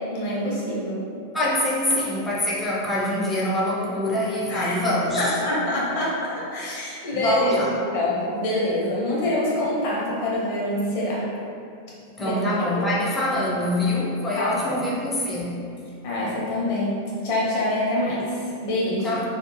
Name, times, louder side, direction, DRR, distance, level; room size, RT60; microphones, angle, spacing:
voice 1, 0.1-1.1 4.5-4.8 5.1-7.6 7.9-11.2 12.2-12.4 12.8-12.9 14.3-14.8 16.0-19.2, left 1 dB, 50° left, -6 dB, 0.8 m, -26 dB
voice 2, 1.3-5.3 7.1-7.7 12.2-15.6 19.0-19.2, left 1 dB, 10° left, -5 dB, 0.4 m, -24 dB
2.4 x 2.0 x 3.1 m, 2.5 s
figure-of-eight pair, 90°, 0 cm